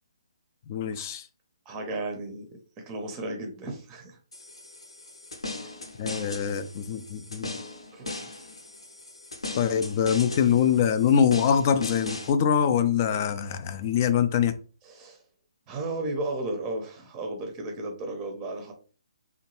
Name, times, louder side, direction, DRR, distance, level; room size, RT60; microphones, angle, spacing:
voice 1, 0.7-1.3 6.0-7.6 9.6-14.5, left 8 dB, 35° left, 0.3 m, -24 dB
voice 2, 1.7-2.4 2.8-4.2 5.6-5.7 7.9-8.4 14.8-15.2 15.7-18.7, right 2 dB, 20° right, 0.6 m, -34 dB
sound 1, 4.3-12.3, left 2 dB, 90° left, 0.8 m, -38 dB
2.8 x 2.2 x 3.0 m
figure-of-eight pair, 145°, 3 cm